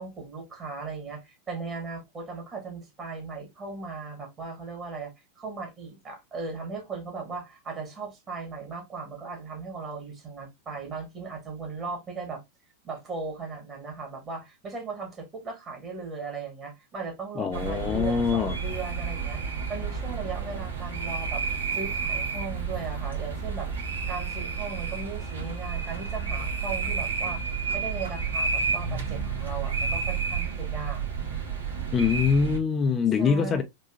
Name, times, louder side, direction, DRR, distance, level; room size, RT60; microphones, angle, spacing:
voice 1, 0.0-12.4 12.8-21.4 21.7-23.7 24.1-31.1 33.2-33.6, right 4 dB, 25° right, 1.7 m, -37 dB
voice 2, 17.4-18.6 31.9-33.6, left 6 dB, 25° left, 0.4 m, -24 dB
sound 1, 17.5-32.6, right 5 dB, 70° right, 1.3 m, -31 dB
4.1 x 2.6 x 2.6 m
figure-of-eight pair, 90°, 0 cm